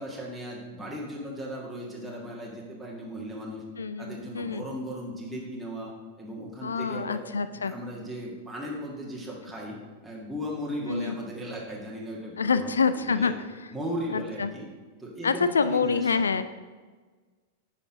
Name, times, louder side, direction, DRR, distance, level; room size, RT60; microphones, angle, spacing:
voice 1, 0.0-3.6 4.0-5.9 6.2-7.2 7.6-9.8 10.0-13.3 13.7-14.7 15.0-16.4, equal, 5° right, -5 dB, 1.7 m, -37 dB
voice 2, 3.8-4.6 6.6-7.7 10.9-11.2 12.4-13.3 14.1-14.5 15.2-16.4, left 5 dB, 75° left, 12 dB, 0.4 m, -26 dB
9.7 x 5.7 x 3.7 m, 1.4 s
figure-of-eight pair, 95°, 0 cm